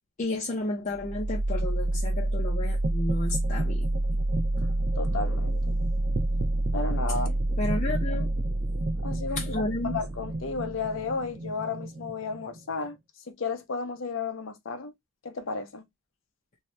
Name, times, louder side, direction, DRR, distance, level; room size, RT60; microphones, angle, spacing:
voice 1, 0.2-3.9 7.6-8.3 9.4-10.0, left 2 dB, 40° left, 0.6 m, -32 dB
sound 1, 0.9-12.8, right 1 dB, 50° right, 0.4 m, -28 dB
voice 2, 5.0-5.8 6.7-7.4 9.0-9.6 9.9-13.0 13.3-14.9 15.2-15.8, left 4 dB, 80° left, 0.7 m, -33 dB
2.7 x 2.3 x 3.1 m
head